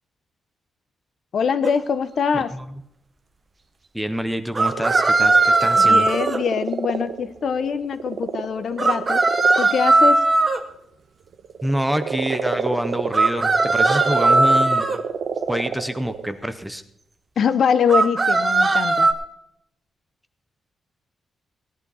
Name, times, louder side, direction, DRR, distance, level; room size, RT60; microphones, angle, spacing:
voice 1, 1.3-2.6 5.8-9.2 9.6-10.2 17.4-19.1, left 6 dB, 50° left, 13 dB, 0.8 m, -23 dB
sound 1, 1.6-1.7 4.5-6.4 8.8-10.6 13.1-15.0 17.9-19.1, right 3 dB, 20° right, 1.1 m, -18 dB
voice 2, 2.3-2.7 3.9-6.1 11.6-15.0 15.5-16.8, equal, 5° right, 10 dB, 0.7 m, -26 dB
sound 2, 4.7-9.7 11.3-16.3, right 6 dB, 55° right, 1.1 m, -29 dB
17.5 x 11.0 x 4.1 m, 0.76 s
wide cardioid pair, 180°, 0 cm